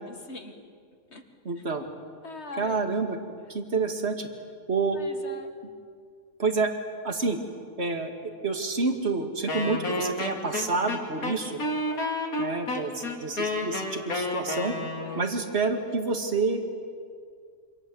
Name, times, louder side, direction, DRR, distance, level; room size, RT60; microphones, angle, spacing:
voice 1, 0.1-0.6 1.1-1.2 2.2-2.8 5.0-5.5 15.0-15.3, left 3 dB, 50° left, 5 dB, 2.3 m, -41 dB
voice 2, 1.4-1.9 2.6-3.2 3.5-4.3 4.7-5.0 6.4-6.7 7.0-7.4 7.8-11.6 12.4-14.7 15.2-16.6, right 4 dB, 50° right, 5 dB, 2.5 m, -28 dB
Wind instrument woodwind instrument, 9.5-15.3, left 1 dB, 80° left, 3.4 m, -30 dB
27.5 x 26.0 x 8.0 m, 2.2 s
omnidirectional pair, 1.5 m